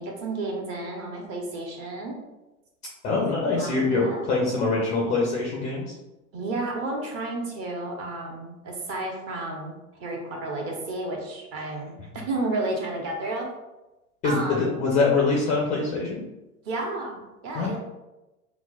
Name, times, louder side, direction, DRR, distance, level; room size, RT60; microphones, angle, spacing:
voice 1, 0.0-2.2 3.6-4.3 6.3-13.5 14.2-14.8 16.6-17.8, right 2 dB, 30° right, 0 dB, 0.8 m, -32 dB
voice 2, 3.0-5.9 14.2-16.2 17.5-17.8, left 3 dB, 20° left, -3 dB, 0.4 m, -24 dB
5.8 x 2.0 x 2.3 m, 1.0 s
hypercardioid pair, 105°, 44 cm